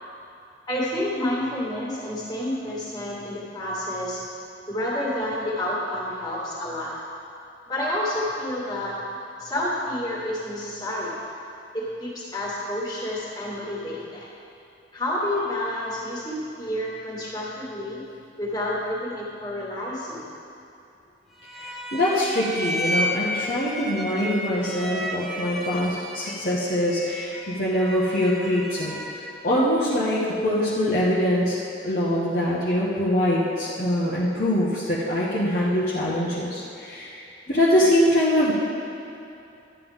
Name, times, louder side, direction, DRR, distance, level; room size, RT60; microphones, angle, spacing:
voice 1, 0.7-4.2 4.7-7.0 7.7-9.0 9.4-11.1 11.7-14.3 14.9-18.0 18.4-20.3, left 1 dB, 20° left, -6 dB, 2.2 m, -29 dB
sound 1, 21.4-29.5, equal, ahead, 0.8 m, -32 dB
voice 2, 21.6-28.9 29.4-31.6 31.8-37.2 37.5-38.5, left 1 dB, 45° left, -8 dB, 1.2 m, -23 dB
12.5 x 9.2 x 3.6 m, 2.7 s
head